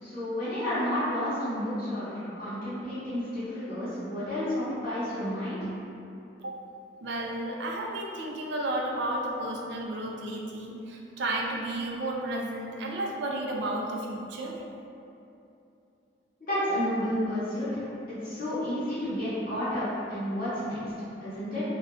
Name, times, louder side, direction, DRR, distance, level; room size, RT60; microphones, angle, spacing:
voice 1, 0.0-5.6 16.4-17.9 18.2-20.8 21.2-21.6, left 1 dB, 50° left, -13 dB, 0.9 m, -31 dB
voice 2, 7.0-14.6 20.8-20.9, right 1 dB, 60° right, -1 dB, 0.4 m, -32 dB
2.4 x 2.2 x 3.6 m, 2.8 s
head